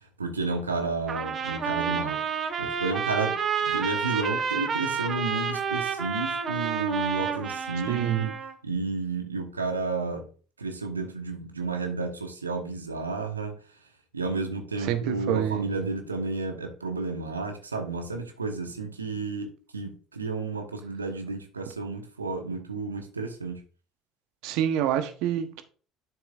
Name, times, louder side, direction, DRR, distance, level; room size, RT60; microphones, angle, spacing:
voice 1, 0.0-3.4 3.6-8.3 8.6-10.3 10.6-13.5 14.1-19.5 19.7-23.6, right 3 dB, 85° right, 1.1 m, -32 dB
Trumpet, 1.1-8.5, right 6 dB, 40° right, 1.1 m, -29 dB
voice 2, 7.9-8.3 14.8-15.8 24.4-25.6, right 10 dB, 60° right, 1.0 m, -27 dB
11.0 x 6.1 x 2.4 m
figure-of-eight pair, 60°, 0 cm